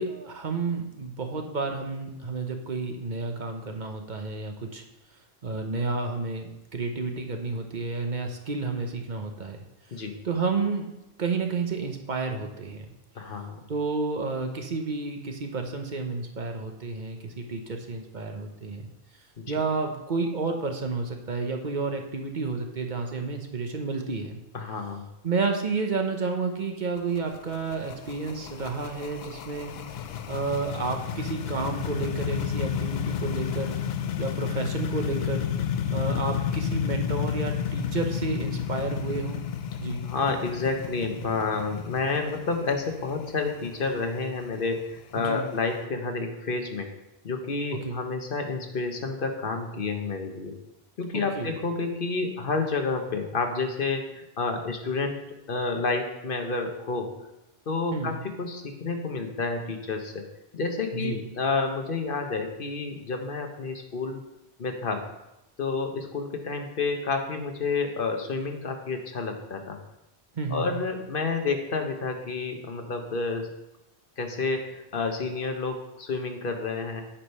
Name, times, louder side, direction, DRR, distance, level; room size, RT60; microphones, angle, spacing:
voice 1, 0.0-4.8 5.4-9.6 10.2-10.9 11.2-12.9 13.7-18.9 19.5-24.4 25.2-29.7 30.3-33.8 34.2-35.5 35.9-39.4 39.8-40.1 45.2-45.5 47.8-48.0 51.1-51.5 57.9-58.1 60.9-61.2 70.4-70.7, right 4 dB, 50° right, 4 dB, 1.0 m, -31 dB
voice 2, 13.2-13.6 19.4-19.6 24.5-25.0 40.0-46.9 47.2-50.5 51.0-55.2 55.5-57.1 57.7-60.2 60.5-64.2 64.6-65.0 65.6-69.8 70.5-73.5 74.2-77.0, left 4 dB, 60° left, 5 dB, 1.1 m, -30 dB
sound 1, 27.0-45.7, left 8 dB, 80° left, 0.8 m, -32 dB
8.7 x 5.0 x 5.5 m, 0.91 s
omnidirectional pair, 1.0 m